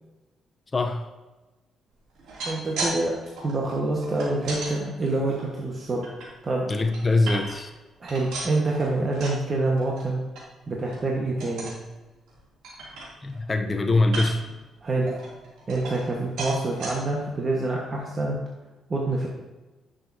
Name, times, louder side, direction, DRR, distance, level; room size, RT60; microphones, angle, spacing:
voice 1, 0.7-1.1 6.7-7.7 13.2-14.4, left 2 dB, 25° left, 4 dB, 0.7 m, -23 dB
sound 1, 2.1-3.0 3.2-4.7 5.3-6.3 6.7-7.7 8.0-9.4 9.8-10.0 10.3-10.4 10.8-11.0 11.4-11.8 12.3-12.4 12.6-13.4 14.0-14.5 15.1-16.1 16.4-16.9 17.5-17.6 17.9-18.0, right 2 dB, 90° right, 2.7 m, -35 dB
voice 2, 2.4-3.1 3.4-6.0 6.4-6.6 8.0-10.2 10.7-11.7 14.8-15.1 15.7-18.3 18.9-19.3, right 2 dB, 35° right, -2 dB, 1.3 m, -26 dB
10.5 x 6.5 x 2.7 m, 1.1 s
cardioid pair, 90°, 0 cm